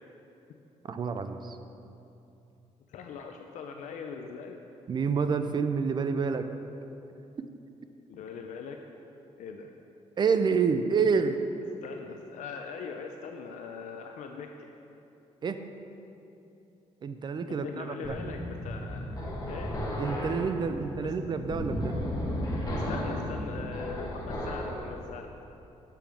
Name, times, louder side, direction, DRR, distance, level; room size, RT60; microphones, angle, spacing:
voice 1, 0.8-1.6 4.9-6.5 7.4-7.5 10.2-11.4 15.4-15.6 17.0-18.2 20.0-22.0, right 5 dB, 35° right, 9 dB, 0.4 m, -28 dB
voice 2, 2.9-4.6 8.1-8.8 9.4-9.7 11.8-14.5 17.5-19.2 19.5-19.8 21.0-21.1 22.7-25.3, left 5 dB, 75° left, 4 dB, 0.4 m, -41 dB
sound 1, 18.0-24.8, left 1 dB, 30° left, 1.3 m, -34 dB
7.3 x 6.9 x 3.5 m, 2.8 s
cardioid pair, 110°, 13 cm